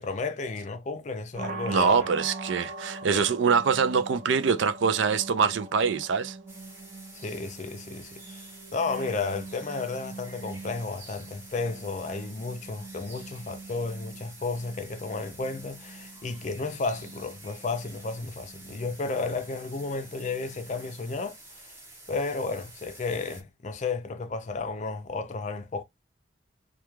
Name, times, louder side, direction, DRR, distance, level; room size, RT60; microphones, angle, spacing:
voice 1, 0.0-2.1 3.1-3.2 7.1-8.5 8.7-21.7 22.1-25.8, left 3 dB, 40° left, 0.4 m, -33 dB
sound 1, 1.3-21.2, right 3 dB, 40° right, 0.7 m, -43 dB
voice 2, 1.7-6.4, right 6 dB, 70° right, 0.4 m, -24 dB
sound 2, 6.5-23.4, right 2 dB, 10° right, 0.8 m, -49 dB
2.3 x 2.3 x 3.0 m
head